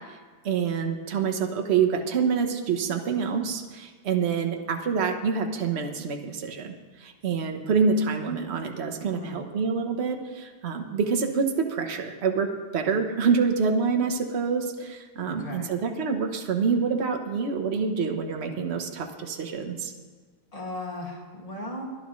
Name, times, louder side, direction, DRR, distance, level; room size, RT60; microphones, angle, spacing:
voice 1, 0.4-6.7 7.0-19.9, right 5 dB, 45° right, 4 dB, 0.9 m, -26 dB
voice 2, 15.3-15.7 20.5-21.8, left 2 dB, 15° left, -2 dB, 2.0 m, -36 dB
22.5 x 10.5 x 3.2 m, 1.5 s
omnidirectional pair, 2.4 m